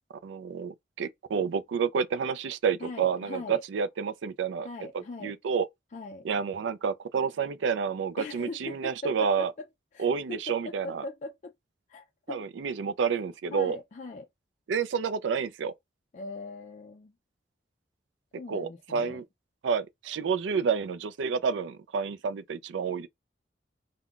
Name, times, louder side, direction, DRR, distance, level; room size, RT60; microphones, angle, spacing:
voice 1, 0.2-4.7 4.9-5.7 6.2-9.5 10.0-11.0 12.3-13.8 14.7-15.7 18.5-19.2 19.6-23.1, right 6 dB, 85° right, 0.4 m, -29 dB
voice 2, 2.8-3.6 4.6-5.3 5.9-6.3 8.2-9.7 9.9-11.5 11.9-12.5 13.5-14.3 16.1-17.1 18.4-19.2, left 3 dB, 40° left, 0.3 m, -40 dB
2.3 x 2.2 x 3.6 m
head